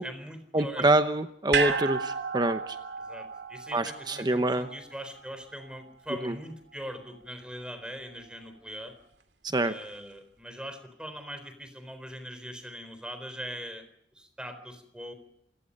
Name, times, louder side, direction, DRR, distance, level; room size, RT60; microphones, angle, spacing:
voice 1, 0.0-1.0 1.6-1.8 3.0-8.9 9.6-13.8 14.1-15.1, equal, 5° right, 9 dB, 3.9 m, -41 dB
voice 2, 0.5-2.8 3.7-4.7 6.2-6.3 9.4-9.7, right 2 dB, 25° right, 9 dB, 0.9 m, -26 dB
sound 1, 1.5-5.9 6.2-6.3, right 5 dB, 80° right, 2.7 m, -33 dB
27.5 x 18.5 x 5.3 m, 0.71 s
head